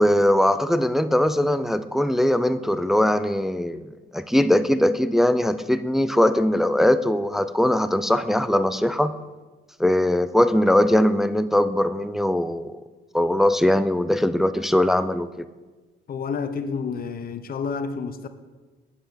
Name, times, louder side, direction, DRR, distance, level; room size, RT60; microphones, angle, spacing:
voice 1, 0.0-3.9 4.1-9.1 9.8-12.7 13.1-15.4, left 1 dB, ahead, 0.4 m, -20 dB
voice 2, 16.1-18.3, left 5 dB, 50° left, 0.7 m, -29 dB
7.9 x 5.6 x 6.8 m
cardioid pair, 90°, 20 cm